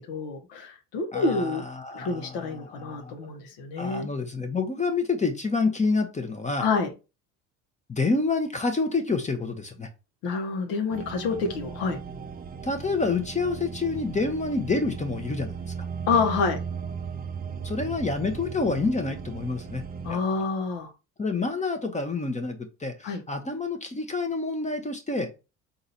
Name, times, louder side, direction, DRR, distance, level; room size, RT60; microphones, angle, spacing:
voice 1, 0.1-1.6 1.9-4.1 6.6-6.9 10.2-12.0 16.1-16.6 20.0-20.9 23.0-23.2, left 4 dB, 70° left, 4 dB, 1.1 m, -28 dB
voice 2, 1.1-3.2 3.8-6.7 7.9-9.9 12.6-15.5 17.6-19.8 20.1-20.2 21.2-25.3, left 3 dB, 15° left, 6 dB, 0.8 m, -28 dB
sound 1, 10.9-20.2, right 6 dB, 25° right, 0.4 m, -36 dB
3.9 x 2.6 x 4.1 m, 0.29 s
hypercardioid pair, 70°, 41 cm